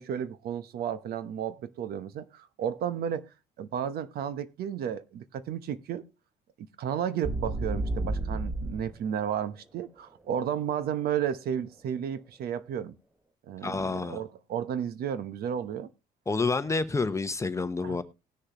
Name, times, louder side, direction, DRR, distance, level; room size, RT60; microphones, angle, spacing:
voice 1, 0.0-3.3 3.6-6.0 6.8-12.9 13.5-15.9 17.8-18.0, right 9 dB, 65° right, 1.0 m, -33 dB
sound 1, 7.2-8.9, right 2 dB, 10° right, 0.9 m, -31 dB
voice 2, 13.6-14.2 16.3-18.0, left 3 dB, 15° left, 0.9 m, -28 dB
19.0 x 6.5 x 3.0 m
cardioid pair, 110°, 17 cm